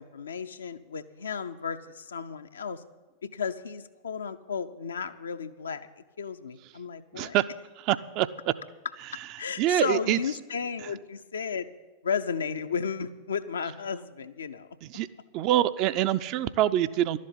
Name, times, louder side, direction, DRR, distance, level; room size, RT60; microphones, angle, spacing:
voice 1, 0.0-2.8 3.2-7.4 9.4-11.7 12.0-14.7, left 6 dB, 70° left, 9 dB, 0.6 m, -34 dB
voice 2, 7.1-7.4 7.8-8.5 9.6-10.2 14.8-15.1 15.3-17.2, right 13 dB, 40° right, 13 dB, 0.5 m, -25 dB
12.0 x 7.5 x 9.6 m, 1.2 s
figure-of-eight pair, 90°, 0 cm